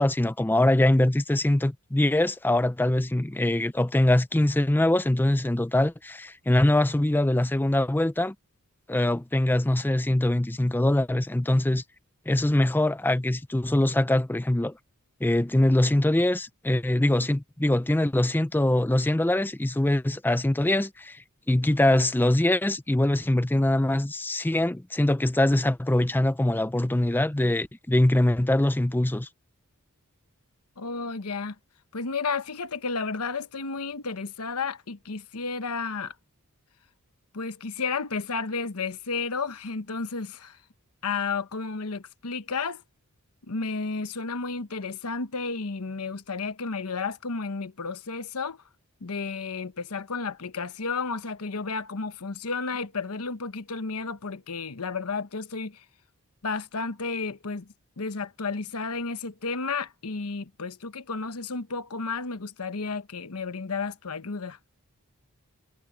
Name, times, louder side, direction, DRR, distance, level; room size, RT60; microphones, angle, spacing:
voice 1, 0.0-8.3 8.9-11.8 12.3-14.7 15.2-29.3, left 1 dB, 10° left, 0.5 m, -23 dB
voice 2, 30.8-31.5 31.9-36.1 37.3-40.6 41.0-42.8 43.5-48.6 49.0-55.8 56.4-57.7 58.0-64.6, left 4 dB, 85° left, 1.1 m, -32 dB
head